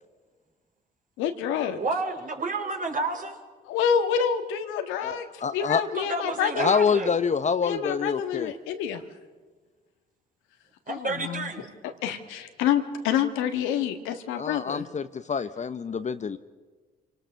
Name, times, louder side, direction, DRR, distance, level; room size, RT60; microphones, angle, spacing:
voice 1, 1.2-1.8 3.7-6.7 7.6-9.0 10.9-11.5 11.8-14.8, left 8 dB, 80° left, 7 dB, 1.6 m, -28 dB
voice 2, 1.7-3.4 5.9-7.1 10.9-11.6, right 3 dB, 40° right, 4 dB, 3.9 m, -30 dB
voice 3, 5.0-5.8 6.5-8.5 14.4-16.4, left 6 dB, 35° left, 12 dB, 0.9 m, -26 dB
27.0 x 18.5 x 6.4 m, 1.4 s
hypercardioid pair, 55°, 20 cm